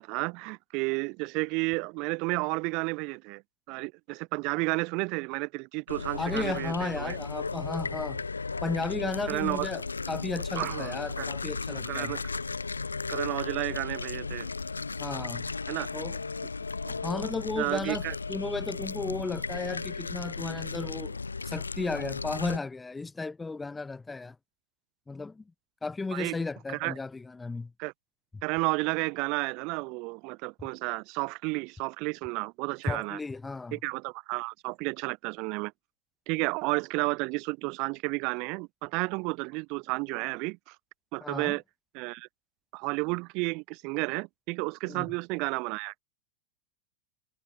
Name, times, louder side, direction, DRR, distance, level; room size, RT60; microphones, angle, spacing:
voice 1, 0.0-3.4 3.7-7.2 9.3-9.7 10.6-11.3 11.9-12.2 13.1-14.5 15.7-15.9 17.6-18.2 26.1-26.4 26.7-27.0 27.8-27.9 28.4-33.2 33.7-35.7 36.3-40.8 41.1-41.6 41.9-42.3 42.7-46.0, right 29 dB, 45° right, 2.5 m, -32 dB
sound 1, 5.9-22.6, left 4 dB, 80° left, 0.8 m, -35 dB
voice 2, 6.2-8.2 8.6-9.8 10.1-12.2 15.0-15.5 15.9-16.2 16.8-21.2 21.4-24.4 25.1-25.4 25.8-27.7 32.9-33.8 41.2-41.6 44.9-45.1, left 3 dB, 10° left, 3.9 m, -34 dB
figure-of-eight pair, 90°, 0 cm